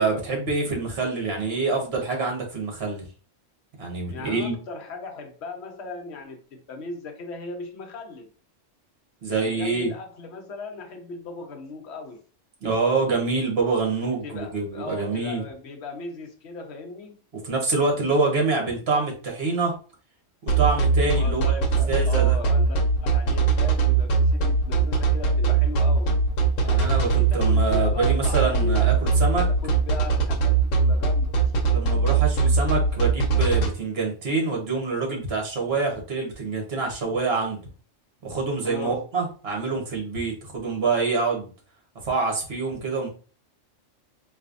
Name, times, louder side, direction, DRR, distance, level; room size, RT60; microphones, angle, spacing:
voice 1, 0.0-3.0 3.8-4.5 9.2-9.9 12.6-15.4 17.3-19.7 20.4-21.4 21.9-22.4 26.6-29.5 31.7-37.6 38.2-41.5 42.0-43.1, right 4 dB, 55° right, 1.3 m, -26 dB
voice 2, 4.1-8.3 9.3-12.2 14.2-17.2 21.2-22.8 23.0-26.1 27.1-29.0 29.3-31.3 38.6-39.0, left 3 dB, 60° left, 1.0 m, -37 dB
sound 1, 20.5-33.7, right 5 dB, 90° left, 1.1 m, -20 dB
4.1 x 2.6 x 2.5 m
omnidirectional pair, 1.3 m